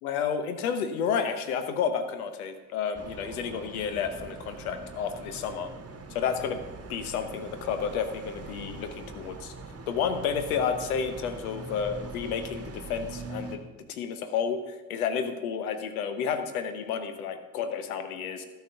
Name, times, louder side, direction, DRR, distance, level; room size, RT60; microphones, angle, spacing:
voice 1, 0.0-5.7 6.1-6.6 6.9-9.5 9.9-13.6 13.9-18.4, left 7 dB, 75° left, 9 dB, 0.9 m, -31 dB
sound 1, 2.9-13.6, right 3 dB, 35° right, 1.3 m, -42 dB
12.5 x 5.3 x 6.3 m, 1.2 s
figure-of-eight pair, 40°, 43 cm